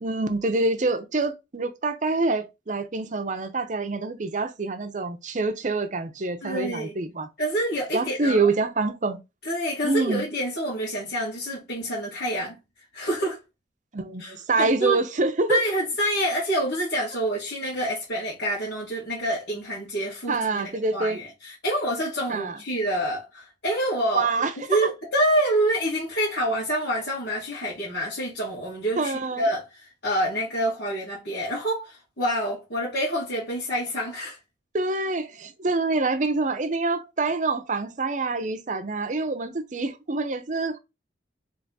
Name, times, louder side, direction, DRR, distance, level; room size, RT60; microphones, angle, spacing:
voice 1, 0.0-7.3 7.9-9.2 9.8-10.2 13.9-15.6 20.3-21.2 22.3-22.6 24.1-24.8 29.0-29.4 34.7-40.8, right 3 dB, 45° right, 0.6 m, -26 dB
voice 2, 6.4-6.9 7.4-8.5 9.4-12.6 12.9-13.4 14.2-15.0 15.5-34.4, right 1 dB, 70° left, 2.0 m, -27 dB
3.5 x 3.2 x 4.0 m
head